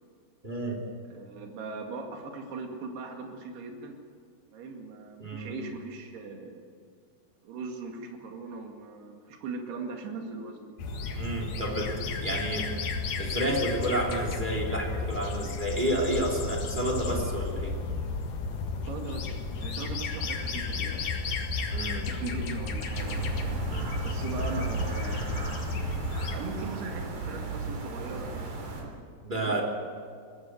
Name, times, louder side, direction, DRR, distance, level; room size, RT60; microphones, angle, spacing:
voice 1, 0.4-0.8 5.2-5.5 11.2-12.7 13.2-17.7 21.7-22.1 29.2-29.6, right 1 dB, 15° right, 0 dB, 2.6 m, -30 dB
voice 2, 1.1-4.0 4.5-6.6 7.4-10.6 18.8-21.1 22.1-23.6 24.0-25.5 26.3-28.5 28.8-29.0 29.3-29.6, right 3 dB, 75° right, 2 dB, 4.2 m, -39 dB
sound 1, 10.8-26.4, left 4 dB, 60° left, 2.9 m, -33 dB
sound 2, 22.9-28.8, right 4 dB, 50° right, 4.4 m, -35 dB
22.5 x 16.0 x 8.0 m, 2.2 s
omnidirectional pair, 4.7 m